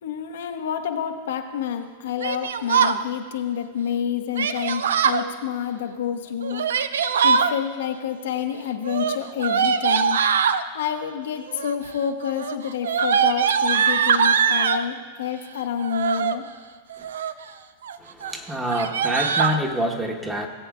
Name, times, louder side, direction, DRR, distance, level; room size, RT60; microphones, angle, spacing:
voice 1, 0.0-6.6 7.2-10.2 10.7-16.4, left 8 dB, 70° left, 5 dB, 0.8 m, -28 dB
Yell, 2.2-3.0 4.3-5.2 6.4-7.5 8.8-10.6 11.5-11.9 12.2-14.8 15.8-16.4 16.9-17.4 17.8-18.0 18.2-18.3 18.6-19.6, right 7 dB, 75° right, 0.4 m, -22 dB
voice 2, 18.0-20.5, right 1 dB, 10° right, 3 dB, 1.3 m, -26 dB
18.5 x 8.1 x 2.5 m, 1.5 s
hypercardioid pair, 100°, 0 cm